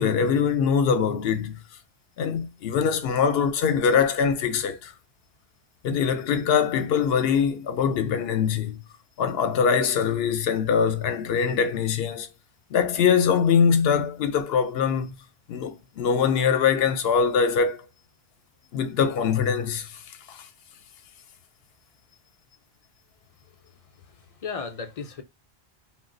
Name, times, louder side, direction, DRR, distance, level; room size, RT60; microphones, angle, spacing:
voice 1, 0.0-1.6 2.2-4.9 5.8-8.8 9.2-12.3 12.7-15.1 15.5-17.8 18.7-20.0 20.3-20.4, left 6 dB, 75° left, 0.8 m, -23 dB
voice 2, 23.9-25.2, left 5 dB, 45° left, 0.5 m, -36 dB
2.3 x 2.1 x 3.6 m
omnidirectional pair, 1.0 m